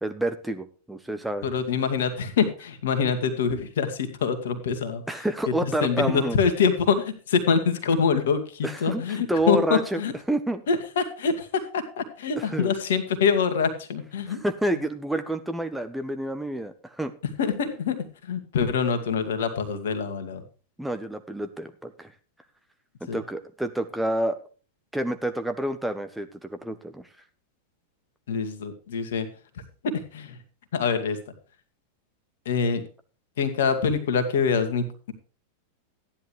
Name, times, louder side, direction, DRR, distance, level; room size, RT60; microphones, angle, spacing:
voice 1, 0.0-1.5 5.1-6.4 8.6-9.0 9.3-10.0 10.3-10.6 12.4-12.7 14.3-17.1 20.8-22.1 23.1-24.4 24.9-27.1, right 1 dB, 5° right, 7 dB, 1.0 m, -28 dB
voice 2, 1.4-5.0 5.6-10.1 10.7-14.4 17.4-20.4 23.1-23.2 28.3-29.3 29.8-30.4 30.7-31.2 32.5-32.8 33.4-35.1, left 6 dB, 60° left, 8 dB, 2.0 m, -25 dB
14.5 x 10.5 x 3.2 m, 0.36 s
figure-of-eight pair, 90°, 0 cm